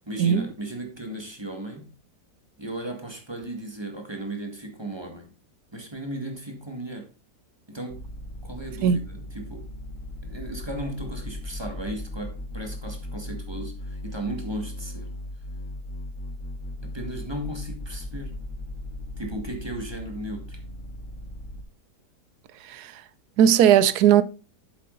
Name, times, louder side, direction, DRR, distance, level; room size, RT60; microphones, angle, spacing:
voice 1, 0.1-1.9 2.6-5.3 5.7-7.1 7.7-8.0 8.4-9.7 10.2-15.1 16.8-18.4 19.2-20.6, right 1 dB, 15° right, 1.7 m, -36 dB
sound 1, 7.9-21.6, left 1 dB, 50° left, 1.6 m, -37 dB
voice 2, 23.4-24.2, right 9 dB, 70° right, 1.1 m, -17 dB
8.3 x 7.6 x 3.8 m
omnidirectional pair, 1.9 m